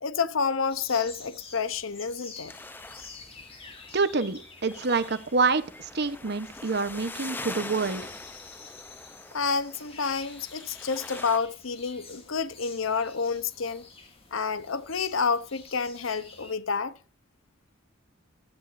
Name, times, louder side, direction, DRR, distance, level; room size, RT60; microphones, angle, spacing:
voice 1, 0.0-2.5 9.3-13.9 14.3-16.9, left 5 dB, 90° left, 0.9 m, -29 dB
sound 1, 0.7-16.6, left 4 dB, 30° left, 2.2 m, -49 dB
sound 2, 2.5-11.4, left 2 dB, 10° left, 0.6 m, -43 dB
voice 2, 3.9-8.0, right 4 dB, 55° right, 1.0 m, -27 dB
16.0 x 12.0 x 2.6 m
head